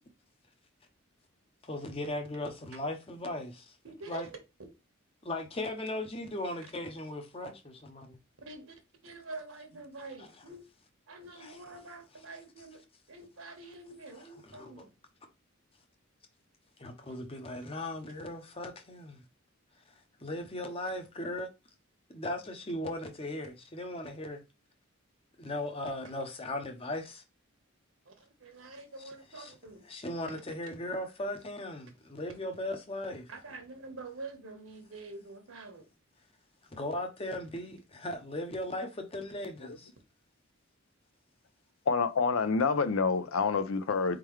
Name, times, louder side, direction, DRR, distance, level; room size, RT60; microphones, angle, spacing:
voice 1, 1.6-3.7 4.1-4.3 5.2-8.2 11.4-11.5 14.5-14.8 16.8-19.2 20.2-21.5 22.1-24.4 25.4-27.2 29.3-29.5 29.9-33.3 36.7-39.9, left 1 dB, 30° left, 0.7 m, -37 dB
voice 2, 3.8-4.4 8.4-8.7 9.0-10.6 11.1-14.9 28.0-29.9 33.3-35.9, right 3 dB, 75° right, 1.2 m, -46 dB
voice 3, 41.9-44.2, left 4 dB, 75° left, 0.5 m, -27 dB
4.5 x 3.7 x 3.1 m
head